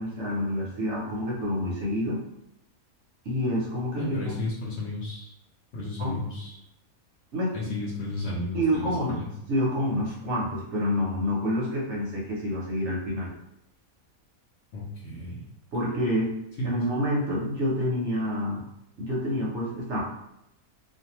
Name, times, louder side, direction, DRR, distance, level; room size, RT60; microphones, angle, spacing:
voice 1, 0.0-2.2 3.2-4.3 6.0-6.2 7.3-7.7 8.5-9.2 9.5-13.3 15.7-16.3 16.6-18.6 19.0-20.0, equal, 60° right, -4 dB, 0.9 m, -28 dB
voice 2, 4.0-5.3 5.7-6.6 7.5-9.3 14.7-15.4 16.6-16.8, left 1 dB, 60° left, -5 dB, 0.8 m, -33 dB
2.6 x 2.3 x 2.9 m, 0.82 s
omnidirectional pair, 1.5 m